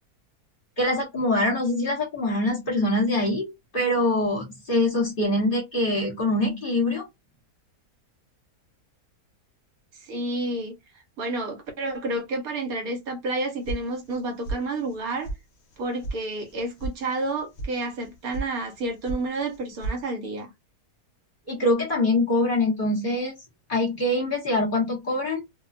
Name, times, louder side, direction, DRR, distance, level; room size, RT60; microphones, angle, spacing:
voice 1, 0.8-7.1 21.5-23.3 23.7-25.5, left 1 dB, 35° left, 1.1 m, -24 dB
voice 2, 10.0-10.8 11.2-15.3 15.8-20.5, right 2 dB, 70° right, 1.3 m, -30 dB
sound 1, 13.7-14.2 14.4-15.0 15.2-15.4 15.7-16.2 16.4-16.9 17.2-17.7 18.0-18.5 18.7-19.2 19.5-20.0, right 2 dB, 60° left, 0.8 m, -32 dB
2.6 x 2.3 x 2.4 m
omnidirectional pair, 1.7 m